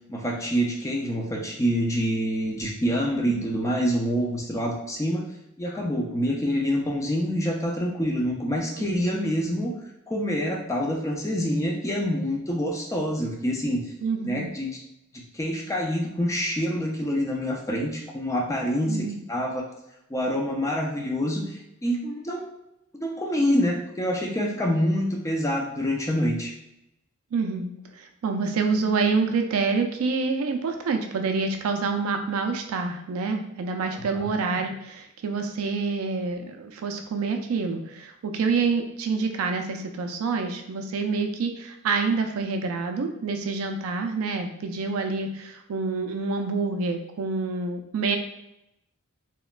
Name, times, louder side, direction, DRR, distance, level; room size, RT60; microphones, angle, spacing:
voice 1, 0.1-5.2 5.6-9.7 10.1-13.8 14.2-14.8 15.1-19.7 20.1-22.4 23.0-26.5 33.9-34.3, equal, 15° left, 0 dB, 0.4 m, -26 dB
voice 2, 14.0-14.5 18.9-19.2 27.3-48.2, right 4 dB, 80° right, 5 dB, 0.4 m, -27 dB
2.9 x 2.1 x 2.3 m, 0.86 s
head